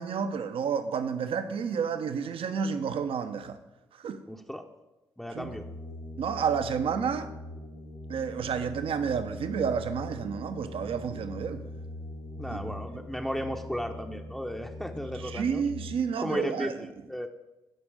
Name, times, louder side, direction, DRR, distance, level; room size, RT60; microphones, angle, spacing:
voice 1, 0.0-3.6 4.0-4.2 5.3-5.5 6.2-7.3 8.1-11.6 12.5-12.8 15.2-16.7, right 6 dB, 55° right, 0.7 m, -30 dB
voice 2, 4.3-4.6 5.2-5.7 12.4-15.6 16.2-17.3, equal, 5° left, 0.7 m, -35 dB
sound 1, 5.4-15.9, left 1 dB, 90° left, 2.4 m, -42 dB
12.0 x 5.2 x 4.9 m
hypercardioid pair, 40°, 11 cm